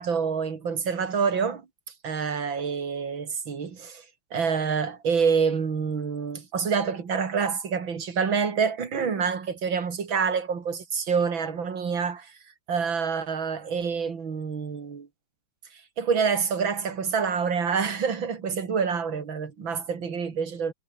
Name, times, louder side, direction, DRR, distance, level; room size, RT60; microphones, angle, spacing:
voice 1, 0.0-1.6 2.0-4.0 4.3-12.4 12.7-15.1 15.7-20.7, right 6 dB, 65° right, 3.3 m, -27 dB
omnidirectional pair, 2.3 m